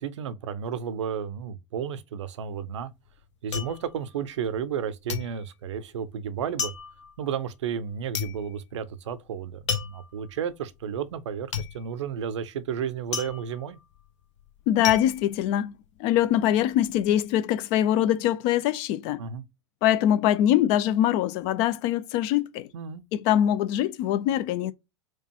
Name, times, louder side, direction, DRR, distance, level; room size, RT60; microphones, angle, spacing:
voice 1, 0.0-2.9 3.4-6.7 7.2-13.8 19.2-19.4 22.7-23.0, right 8 dB, 60° right, 0.6 m, -32 dB
sound 1, 2.4-4.8 5.1-16.2 16.5-17.1, left 7 dB, 65° left, 0.9 m, -35 dB
voice 2, 14.7-15.7 16.0-19.2 19.8-22.7 23.1-24.7, left 11 dB, 40° left, 0.4 m, -23 dB
4.5 x 2.3 x 2.7 m
figure-of-eight pair, 95°, 17 cm